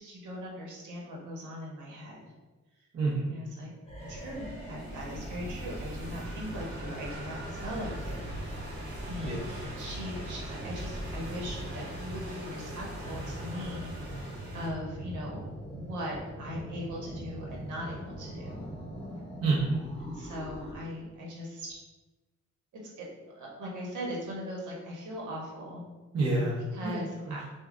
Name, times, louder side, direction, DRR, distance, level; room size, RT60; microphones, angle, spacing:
voice 1, 0.0-2.3 3.3-3.7 4.1-8.3 9.1-15.4 15.7-18.5 20.0-21.8 22.7-23.0 23.3-25.8 26.7-27.5, equal, 85° right, -3 dB, 1.2 m, -40 dB
voice 2, 2.9-3.3 9.2-9.4 19.4-19.8 26.1-26.6 26.8-27.4, right 3 dB, 55° right, -5 dB, 0.9 m, -28 dB
sound 1, 3.9-20.7, right 1 dB, 20° left, 0.8 m, -41 dB
sound 2, 4.0-14.7, right 1 dB, 35° right, 1.5 m, -44 dB
6.5 x 2.4 x 2.5 m, 1.2 s
wide cardioid pair, 170°, 29 cm